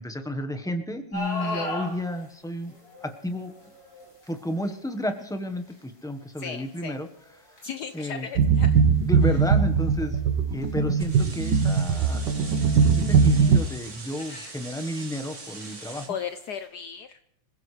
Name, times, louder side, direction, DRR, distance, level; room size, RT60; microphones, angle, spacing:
voice 1, 0.0-2.7 3.0-3.5 4.3-7.1 7.5-7.6 7.9-8.3 9.0-10.2 10.5-12.3 12.8-16.2, equal, 5° left, 6 dB, 0.9 m, -32 dB
sound 1, 1.1-16.7, left 1 dB, 80° left, 7.9 m, -43 dB
voice 2, 1.4-1.7 6.4-7.0 7.6-8.8 14.3-14.5 16.1-17.2, left 7 dB, 65° left, 9 dB, 1.2 m, -36 dB
sound 2, 8.4-13.6, right 6 dB, 65° right, 1.6 m, -21 dB
sound 3, 11.0-16.1, right 3 dB, 40° right, 2.3 m, -42 dB
26.5 x 16.0 x 3.3 m, 0.74 s
omnidirectional pair, 2.1 m